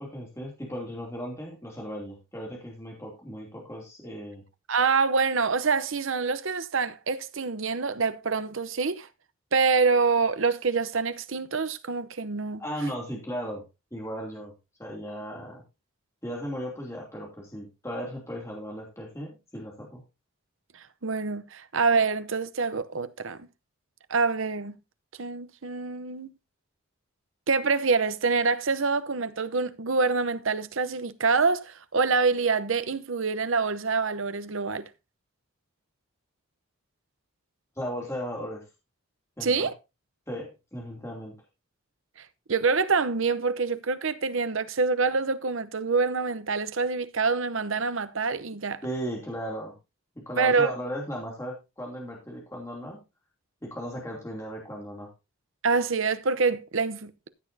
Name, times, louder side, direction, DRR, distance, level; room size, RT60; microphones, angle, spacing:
voice 1, 0.0-4.4 12.6-13.6 13.9-14.5 14.8-15.6 16.2-20.0 37.8-38.6 39.4-39.7 40.3-41.4 48.8-49.7 50.1-53.0 53.6-55.1, equal, 15° left, 2.8 m, -36 dB
voice 2, 4.7-9.1 9.5-12.6 21.0-23.5 24.1-24.7 25.2-26.3 27.5-34.9 39.4-39.7 42.5-48.8 50.3-50.7 55.6-57.3, right 4 dB, 65° right, 0.8 m, -26 dB
14.5 x 8.7 x 2.7 m
head